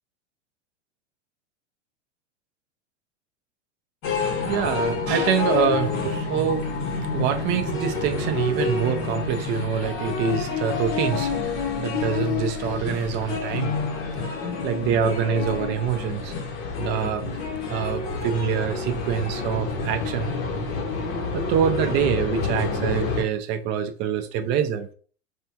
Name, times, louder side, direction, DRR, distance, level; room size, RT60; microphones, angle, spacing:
sound 1, 4.0-23.2, left 4 dB, 35° left, 0.8 m, -28 dB
voice 1, 4.5-13.9 14.2-16.3 16.8-17.4 17.7-20.3 21.3-24.9, right 7 dB, 30° right, 0.4 m, -25 dB
3.4 x 2.2 x 2.7 m
hypercardioid pair, 110°, 36 cm